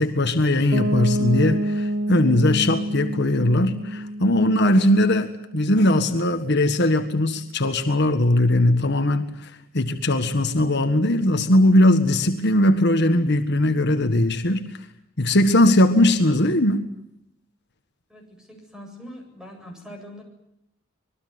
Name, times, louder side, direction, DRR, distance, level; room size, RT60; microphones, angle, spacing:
voice 1, 0.0-14.7 15.2-16.9, left 1 dB, 55° left, 7 dB, 1.6 m, -20 dB
Piano, 0.7-6.4, right 1 dB, 85° right, 2.8 m, -28 dB
voice 2, 18.1-20.2, equal, 5° right, 2 dB, 7.9 m, -42 dB
26.0 x 21.5 x 9.6 m, 0.84 s
head